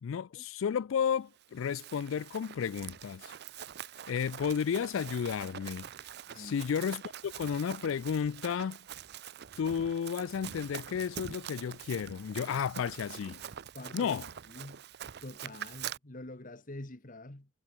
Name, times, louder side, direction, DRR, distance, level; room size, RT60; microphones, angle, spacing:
voice 1, 0.0-3.3 4.1-5.9 6.4-8.8 9.6-13.4 13.9-14.3, left 7 dB, 70° left, 0.4 m, -32 dB
Run, 1.4-16.0, right 9 dB, 50° right, 0.5 m, -45 dB
voice 2, 6.3-6.6 13.7-14.1 14.5-14.8 15.2-17.5, left 1 dB, 40° left, 1.7 m, -46 dB
head